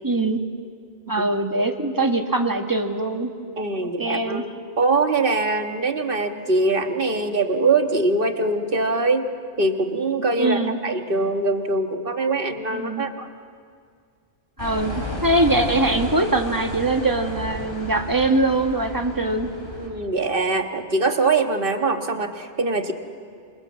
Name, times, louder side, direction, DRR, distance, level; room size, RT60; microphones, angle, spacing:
voice 1, 0.0-0.4 1.1-3.3 3.8-4.4 10.4-10.8 12.7-13.1 14.6-14.9 15.2-19.5, right 2 dB, 20° right, 4 dB, 1.7 m, -22 dB
voice 2, 3.6-4.5 4.8-9.3 9.6-13.3 19.8-22.9, right 3 dB, 55° right, 5 dB, 1.7 m, -23 dB
sound 1, 14.6-19.9, equal, 55° left, 5.8 m, -33 dB
27.0 x 26.5 x 7.3 m, 2.2 s
omnidirectional pair, 1.1 m